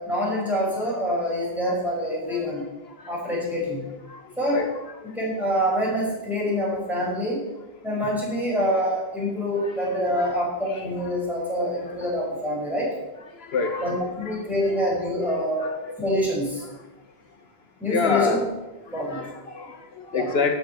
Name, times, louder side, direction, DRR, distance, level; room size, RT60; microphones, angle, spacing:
voice 1, 0.0-2.7 3.1-3.9 4.4-4.6 5.0-7.4 7.8-12.9 13.8-15.7 16.0-16.6 17.8-18.4 18.9-19.3 20.1-20.3, equal, ahead, -5 dB, 5.6 m, -26 dB
voice 2, 9.9-10.4 10.7-10.9 11.9-12.0 13.5-14.4 14.8-15.0 15.6-16.0 17.9-18.5 18.9-20.6, left 5 dB, 80° left, 7 dB, 1.3 m, -28 dB
12.5 x 8.4 x 6.8 m, 1.0 s
omnidirectional pair, 1.0 m